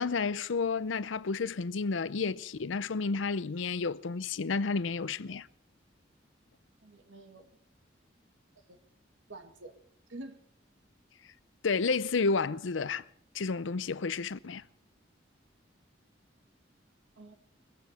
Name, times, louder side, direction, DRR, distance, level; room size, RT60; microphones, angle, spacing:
voice 1, 0.0-5.5 11.6-13.0 13.3-14.6, left 4 dB, 85° left, 0.6 m, -31 dB
voice 2, 6.8-7.5 8.7-8.8 9.3-9.7 10.1-10.4 17.2-17.4, right 2 dB, 80° right, 1.9 m, -47 dB
21.5 x 15.0 x 4.3 m
head